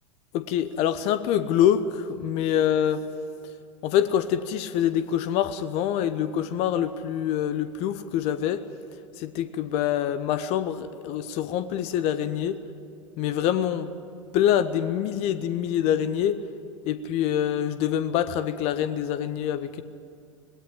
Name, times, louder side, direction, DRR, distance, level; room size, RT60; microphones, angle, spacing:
voice 1, 0.3-3.0 3.8-8.6 9.2-12.6 13.2-13.9 14.3-16.4 16.9-19.8, left 10 dB, 40° left, 14 dB, 0.8 m, -25 dB
19.0 x 17.0 x 9.5 m, 2.5 s
figure-of-eight pair, 85°, 17 cm